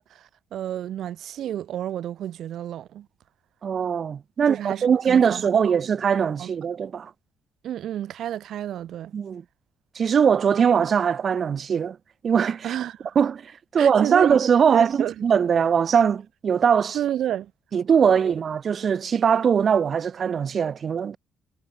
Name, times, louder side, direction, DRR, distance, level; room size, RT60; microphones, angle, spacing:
voice 1, 0.0-3.1 4.5-5.8 6.4-6.5 7.6-9.1 12.6-13.2 13.8-14.4 14.7-15.2 16.9-17.5 18.1-18.4, right 11 dB, 75° right, 7.3 m, -31 dB
voice 2, 3.6-7.1 9.1-9.4 9.9-12.0 12.2-12.6 13.1-17.0 17.7-21.2, right 7 dB, 50° right, 1.6 m, -21 dB
cardioid pair, 90°, 0 cm